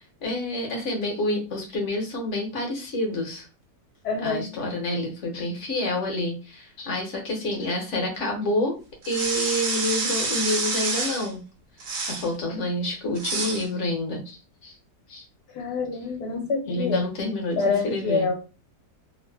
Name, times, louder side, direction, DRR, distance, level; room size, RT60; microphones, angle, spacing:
voice 1, 0.2-3.5 4.2-8.8 9.0-11.4 12.1-14.7 15.1-15.2 16.7-18.3, left 1 dB, 55° left, 1 dB, 1.0 m, -28 dB
voice 2, 4.0-4.5 15.5-17.1 17.6-18.3, left 4 dB, 75° left, 0 dB, 1.2 m, -26 dB
sound 1, 9.0-11.3 11.8-12.3 13.2-13.7, right 3 dB, 80° right, 1.3 m, -28 dB
3.2 x 2.1 x 2.2 m, 0.32 s
omnidirectional pair, 1.8 m